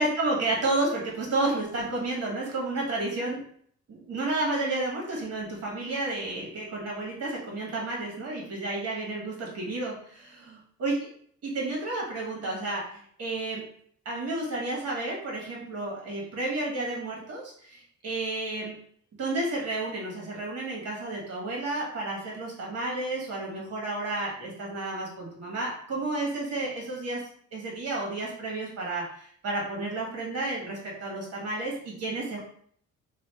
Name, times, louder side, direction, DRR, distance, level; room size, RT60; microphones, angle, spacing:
voice 1, 0.0-3.4 3.9-10.9 11.5-13.6 14.0-18.7 19.2-27.2 27.5-32.4, right 2 dB, 55° right, -2 dB, 1.5 m, -31 dB
3.0 x 2.5 x 3.3 m, 0.62 s
cardioid pair, 90°, 30 cm